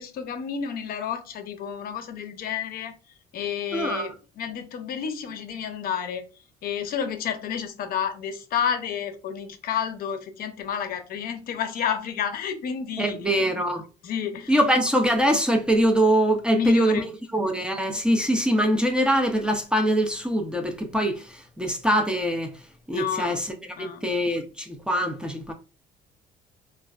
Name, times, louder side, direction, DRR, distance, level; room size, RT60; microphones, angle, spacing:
voice 1, 0.0-2.9 3.3-6.2 6.6-13.4 14.0-14.5 16.5-17.1 22.9-23.4 23.8-24.0, left 7 dB, 60° left, 0.6 m, -30 dB
voice 2, 3.7-4.1 13.0-13.8 14.5-22.6 22.9-25.5, equal, 5° right, 0.5 m, -23 dB
3.2 x 2.3 x 2.3 m
cardioid pair, 110°, 17 cm